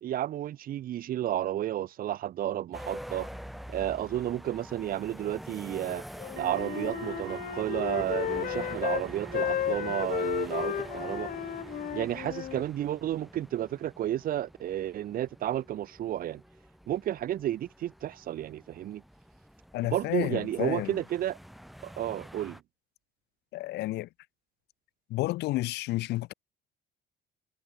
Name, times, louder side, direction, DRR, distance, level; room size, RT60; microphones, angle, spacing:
voice 1, 0.0-3.3 3.7-6.0 6.4-11.3 11.9-16.4 16.9-19.0 19.8-21.4 21.8-22.6, right 12 dB, 60° right, 1.0 m, -32 dB
sound 1, 2.7-22.6, equal, ahead, 7.4 m, -46 dB
Wind instrument woodwind instrument, 6.2-9.1 9.3-12.6, left 11 dB, 55° left, 1.8 m, -33 dB
sound 2, 6.4-12.1, right 16 dB, 75° right, 7.2 m, -45 dB
voice 2, 19.7-21.0 23.5-24.1 25.1-26.3, left 18 dB, 80° left, 1.3 m, -31 dB
cardioid pair, 110°, 17 cm